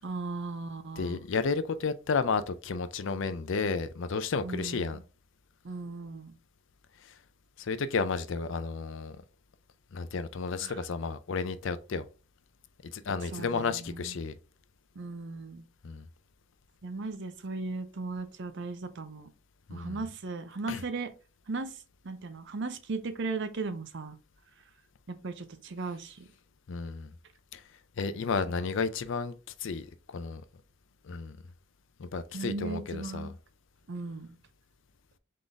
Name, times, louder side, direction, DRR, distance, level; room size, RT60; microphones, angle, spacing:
voice 1, 0.0-1.2 4.4-5.0 5.6-6.3 10.6-10.8 13.3-14.1 15.0-15.6 16.8-19.3 19.7-21.1 21.5-21.8 22.0-24.2 25.1-26.3 32.3-33.3 33.9-34.4, right 3 dB, 55° right, 0.6 m, -37 dB
voice 2, 1.0-5.0 7.0-7.2 7.6-9.2 9.9-12.1 12.8-14.4 15.8-16.1 19.7-20.0 20.7-20.8 26.7-27.1 27.5-27.6 28.0-30.4 31.0-31.4 32.0-33.3, left 4 dB, 60° left, 0.4 m, -32 dB
3.9 x 3.8 x 3.4 m
head